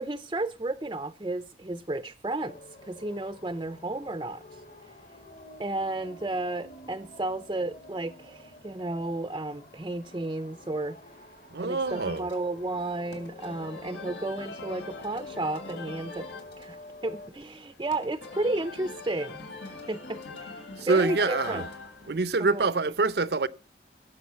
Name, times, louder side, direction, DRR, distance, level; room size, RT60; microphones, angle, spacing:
voice 1, 0.0-4.6 5.6-11.0 11.6-16.3 16.6-21.6 22.4-22.6, right 2 dB, 25° right, 0.6 m, -33 dB
sound 1, 2.4-17.3, left 2 dB, 50° left, 2.0 m, -49 dB
voice 2, 11.5-12.3 20.8-21.7 22.0-23.5, right 3 dB, 65° right, 0.6 m, -26 dB
sound 2, 11.8-22.1, left 3 dB, 85° left, 3.2 m, -42 dB
17.5 x 7.6 x 5.6 m
head